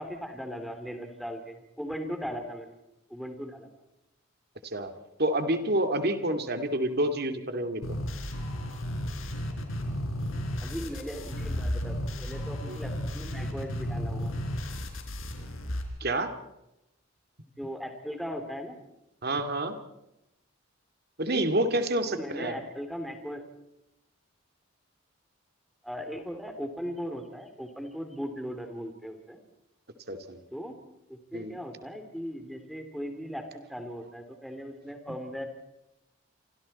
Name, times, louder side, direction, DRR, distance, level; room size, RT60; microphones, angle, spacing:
voice 1, 0.0-2.8 3.1-3.7 10.6-14.3 17.6-18.8 22.0-23.4 25.8-29.4 30.5-30.8 31.1-35.5, equal, ahead, 5 dB, 3.0 m, -38 dB
voice 2, 5.2-7.9 12.7-12.8 16.0-16.3 19.2-19.8 21.2-22.6 30.1-30.4 31.3-31.6, right 1 dB, 50° right, 7 dB, 2.4 m, -28 dB
sound 1, 7.8-15.8, equal, 85° left, 4.4 m, -33 dB
28.5 x 26.5 x 4.3 m, 0.87 s
head